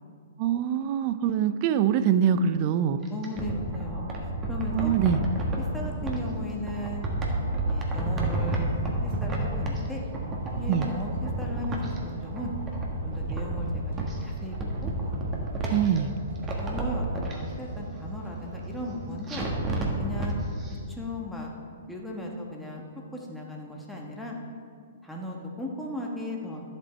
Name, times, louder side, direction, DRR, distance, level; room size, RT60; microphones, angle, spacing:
voice 1, 0.4-3.0 4.7-5.2 10.7-10.9 15.7-16.1, right 8 dB, 40° right, 12 dB, 0.5 m, -24 dB
sound 1, 3.0-6.2 6.7-9.9 10.1-12.0 12.3-14.2 14.5-16.0 16.4-17.3 19.3-20.3 20.6-20.7, right 2 dB, 20° right, 1.6 m, -30 dB
voice 2, 3.1-4.0 4.5-4.9 5.4-7.0 7.6-8.7 9.0-10.0 10.5-12.5 13.0-13.9 14.2-14.9 16.0-16.1 16.6-19.5 20.0-20.3 20.9-21.5 21.9-22.8 23.1-24.4 25.0-26.6, left 1 dB, 5° left, -2 dB, 1.3 m, -36 dB
sound 2, 5.1-19.2, right 2 dB, 60° right, 1.3 m, -40 dB
11.5 x 7.5 x 4.4 m, 2.3 s
figure-of-eight pair, 120°, 0 cm